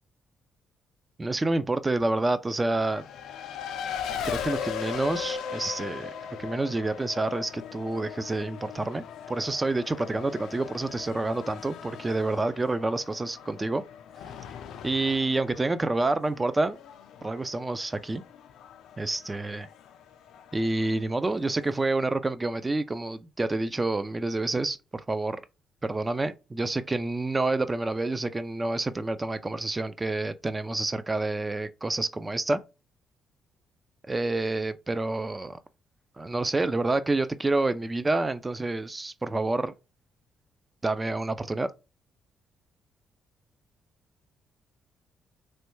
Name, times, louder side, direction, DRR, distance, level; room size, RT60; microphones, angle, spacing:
voice 1, 1.2-3.1 4.2-6.1 6.4-13.8 14.8-16.8 17.2-18.2 19.0-19.7 20.5-25.4 25.8-32.6 34.0-35.6 36.2-39.7 40.8-41.7, right 2 dB, 20° right, 0.3 m, -28 dB
Race car auto racing, 2.8-21.9, left 7 dB, 80° left, 0.3 m, -39 dB
3.2 x 2.2 x 3.0 m
cardioid pair, 90°, 0 cm